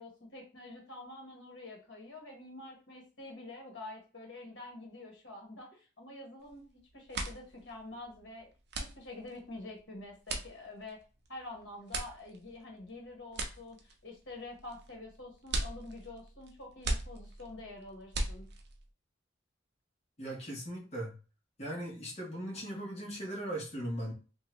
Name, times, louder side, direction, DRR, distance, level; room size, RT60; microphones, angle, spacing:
voice 1, 0.0-8.5 8.9-11.0 11.3-18.4, left 2 dB, 75° left, 1 dB, 1.2 m, -47 dB
sound 1, 6.4-6.7 7.0-18.9, right 2 dB, 60° right, 0.5 m, -39 dB
voice 2, 20.2-21.2 21.6-24.1, right 1 dB, 35° left, -2 dB, 1.1 m, -38 dB
2.8 x 2.3 x 3.0 m, 0.34 s
head